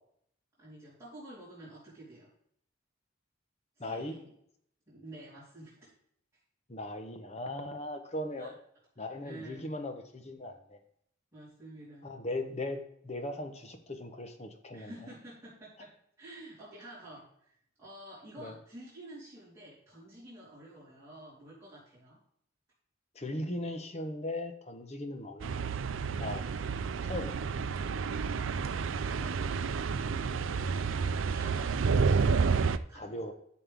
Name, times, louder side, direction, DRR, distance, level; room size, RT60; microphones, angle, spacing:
voice 1, 0.6-2.3 3.8-4.3 4.9-5.9 8.4-8.5 9.2-9.7 11.3-12.2 14.7-22.2 29.1-31.9 32.3-33.3, right 1 dB, 15° right, -11 dB, 3.7 m, -50 dB
voice 2, 3.8-4.1 6.7-8.5 9.0-10.8 12.0-15.0 18.4-18.5 23.1-25.5 26.2-26.5 27.0-27.3 32.9-33.3, left 1 dB, 35° left, 7 dB, 1.0 m, -38 dB
sound 1, 25.4-32.8, right 5 dB, 75° right, 0.5 m, -30 dB
11.5 x 6.6 x 3.6 m, 0.69 s
head